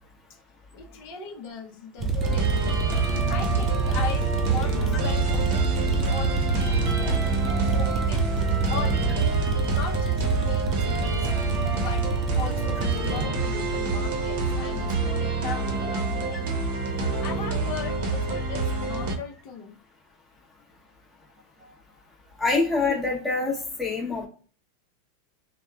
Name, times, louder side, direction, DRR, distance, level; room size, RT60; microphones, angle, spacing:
voice 1, 0.7-2.6 3.0-7.2 7.7-8.3 8.7-9.2 9.7-11.3 11.8-12.1 12.4-16.5 17.2-19.8, left 6 dB, 50° left, 1 dB, 0.6 m, -38 dB
sound 1, 2.0-13.3, right 4 dB, 20° right, 0.4 m, -26 dB
sound 2, 2.2-19.2, right 3 dB, 60° right, 0.7 m, -28 dB
voice 2, 22.4-24.3, left 3 dB, 5° left, -3 dB, 0.8 m, -25 dB
2.9 x 2.0 x 2.3 m, 0.41 s
supercardioid pair, 150°, 0 cm